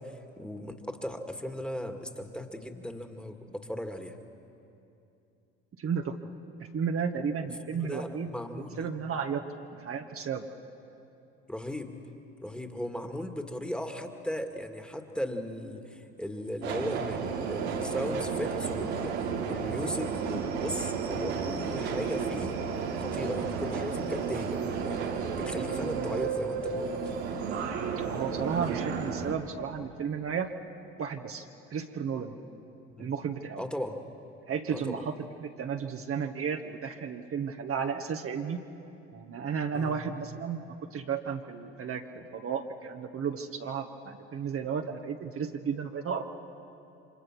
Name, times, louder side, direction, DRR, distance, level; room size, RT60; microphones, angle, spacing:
voice 1, 0.0-4.2 7.7-8.9 11.5-11.9 12.4-22.6 23.0-27.0 32.9-33.1 33.6-34.0 34.7-35.0 39.7-40.0, equal, 5° left, 6 dB, 2.1 m, -37 dB
voice 2, 5.8-6.3 6.7-9.4 9.7-10.5 28.0-30.5 31.0-32.3 33.0-33.6 34.5-35.1 35.4-38.6 39.1-46.2, right 6 dB, 45° right, 4 dB, 1.4 m, -33 dB
Subway metro underground, 16.6-29.4, right 6 dB, 85° right, 1.9 m, -32 dB
29.0 x 25.0 x 6.1 m, 2.7 s
hypercardioid pair, 65°, 32 cm